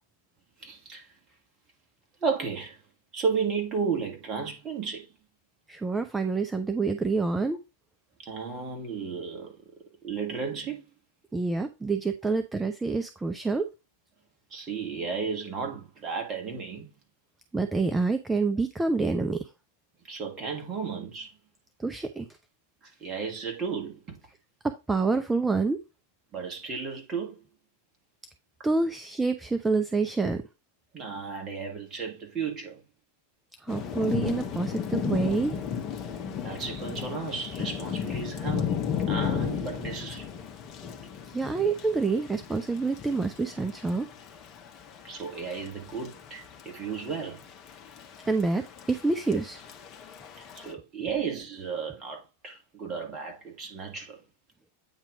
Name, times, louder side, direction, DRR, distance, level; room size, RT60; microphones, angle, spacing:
voice 1, 0.6-1.1 2.2-2.8 3.1-5.1 8.2-9.6 10.0-10.8 14.5-16.9 20.1-21.4 22.8-24.2 26.3-27.5 30.9-32.8 36.2-38.8 39.1-40.3 45.0-47.4 50.5-54.2, right 5 dB, 25° right, 2.2 m, -34 dB
voice 2, 5.7-7.6 11.3-13.7 17.5-19.5 21.8-22.3 24.6-25.8 28.6-30.4 33.6-35.6 41.3-44.1 48.3-49.6, right 3 dB, 10° right, 0.5 m, -27 dB
Thunder / Rain, 33.7-50.7, left 8 dB, 30° left, 1.1 m, -35 dB
8.7 x 3.0 x 4.9 m
figure-of-eight pair, 90°, 0 cm